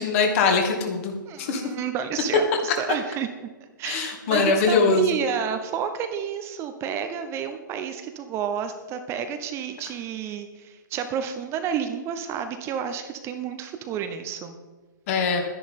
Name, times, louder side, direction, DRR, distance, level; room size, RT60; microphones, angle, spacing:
voice 1, 0.0-1.7 2.7-2.8 3.8-5.0 15.1-15.4, left 4 dB, 40° left, 4 dB, 2.3 m, -22 dB
voice 2, 1.3-3.5 3.8-14.6, right 7 dB, 25° right, 8 dB, 0.9 m, -30 dB
11.5 x 10.5 x 5.4 m, 1.3 s
figure-of-eight pair, 120°, 11 cm